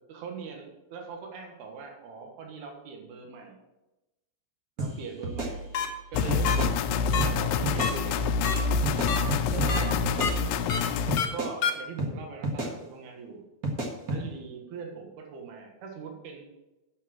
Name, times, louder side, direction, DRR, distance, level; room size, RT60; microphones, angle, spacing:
voice 1, 0.1-3.6 4.8-5.6 6.1-6.6 7.1-8.4 9.5-10.0 11.3-13.4 14.1-16.5, right 5 dB, 80° right, 2 dB, 3.5 m, -41 dB
sound 1, 4.8-4.9 5.2-6.0 6.3-6.7 7.2-7.3 7.6-7.9 8.8-9.7 10.0-10.8 11.1-11.5 12.0-12.1 12.4-12.7 13.6-14.2, right 2 dB, 55° right, 1.0 m, -31 dB
sound 2, 5.7-5.9 6.4-6.6 7.1-7.2 7.8-7.9 8.4-8.5 9.1-9.2 9.7-9.8 10.2-10.3 10.7-10.8 11.2-11.3 11.6-11.7, left 7 dB, 60° left, 1.5 m, -27 dB
sound 3, 6.1-11.2, left 5 dB, 90° left, 2.7 m, -27 dB
8.9 x 7.1 x 7.6 m, 0.99 s
omnidirectional pair, 4.5 m